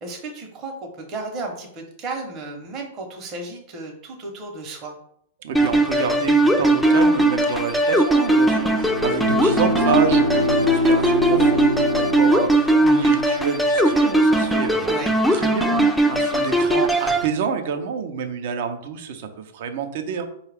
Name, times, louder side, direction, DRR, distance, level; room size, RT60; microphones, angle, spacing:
voice 1, 0.0-5.0 14.8-15.1 16.5-16.8, right 3 dB, 35° right, 1 dB, 0.9 m, -34 dB
voice 2, 5.4-15.0 15.3-20.2, right 6 dB, 60° right, 7 dB, 0.6 m, -28 dB
sound 1, 5.5-17.3, right 1 dB, ahead, 0.4 m, -19 dB
Bowed string instrument, 8.6-13.2, equal, 70° left, 0.8 m, -25 dB
4.6 x 2.3 x 3.4 m, 0.70 s
hypercardioid pair, 120°, 0 cm